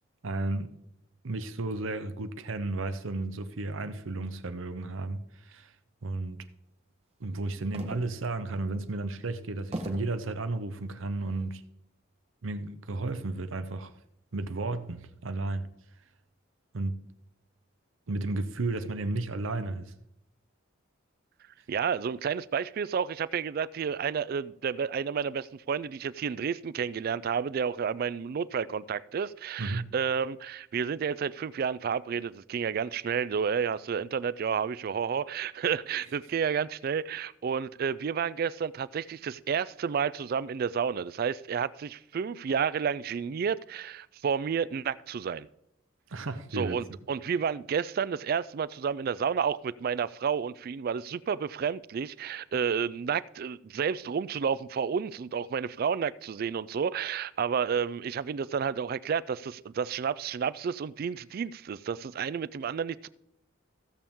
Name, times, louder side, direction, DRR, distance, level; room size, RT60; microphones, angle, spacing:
voice 1, 0.2-0.7 1.2-5.7 6.0-6.4 7.2-11.6 12.4-13.9 14.3-15.7 16.7-16.9 18.1-19.9 29.6-29.9 46.1-46.8, right 2 dB, 70° right, 0.7 m, -33 dB
sound 1, 7.7-8.4 8.9-9.0 9.7-10.2 11.0-11.5, right 1 dB, 30° right, 1.1 m, -38 dB
voice 2, 21.7-45.5 46.5-63.1, right 7 dB, 45° right, 0.3 m, -31 dB
16.0 x 7.0 x 3.6 m
head